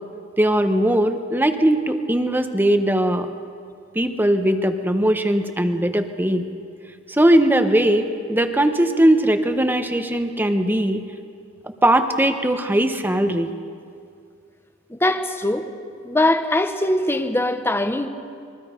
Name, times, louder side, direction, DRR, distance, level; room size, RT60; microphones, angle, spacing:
voice 1, 0.4-3.3 3.9-6.5 7.1-11.0 11.8-13.5, right 1 dB, 10° right, 7 dB, 1.0 m, -19 dB
voice 2, 14.9-15.7 16.0-18.1, left 1 dB, 10° left, 8 dB, 1.0 m, -21 dB
26.0 x 22.0 x 5.2 m, 2.3 s
head